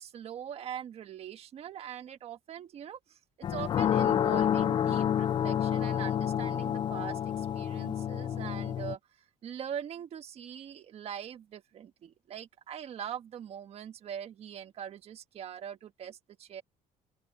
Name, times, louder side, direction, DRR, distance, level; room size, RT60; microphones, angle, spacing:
voice 1, 0.0-9.0 9.4-16.6, right 9 dB, 40° right, 1.5 m, -42 dB
sound 1, 3.4-9.0, left 9 dB, 30° left, 0.4 m, -29 dB
open air
cardioid pair, 155°, 15 cm